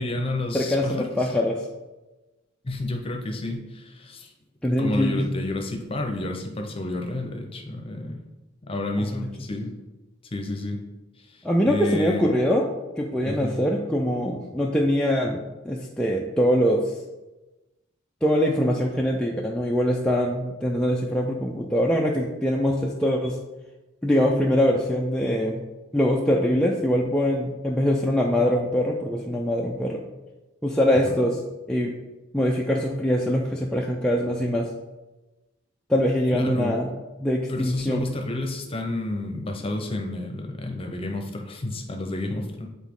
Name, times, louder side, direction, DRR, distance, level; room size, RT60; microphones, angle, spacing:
voice 1, 0.0-1.3 2.6-4.3 4.7-8.2 8.6-9.7 10.3-10.8 11.2-12.3 13.3-13.6 31.1-31.2 36.3-36.7 37.5-42.7, left 2 dB, 25° left, 3 dB, 0.8 m, -30 dB
voice 2, 0.5-1.6 4.6-5.3 9.0-9.3 11.4-12.7 13.0-16.9 18.2-23.4 24.0-25.6 25.9-30.0 30.6-31.4 31.7-31.9 32.3-34.7 35.9-36.9 37.2-38.1, equal, 5° left, -2 dB, 0.4 m, -23 dB
8.2 x 4.0 x 3.6 m, 1.1 s
head